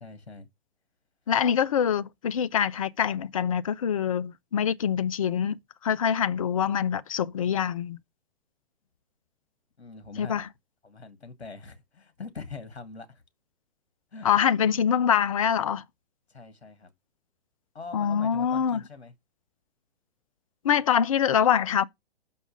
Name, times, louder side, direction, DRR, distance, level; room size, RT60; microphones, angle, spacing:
voice 1, 0.0-0.5 9.8-10.4 10.8-13.2 14.1-14.3 16.3-16.9 17.7-19.1, left 4 dB, 70° left, 1.8 m, -43 dB
voice 2, 1.3-8.0 10.2-10.5 14.2-15.9 17.9-18.8 20.6-21.8, left 8 dB, 35° left, 0.4 m, -25 dB
5.9 x 5.4 x 5.2 m
figure-of-eight pair, 120°, 32 cm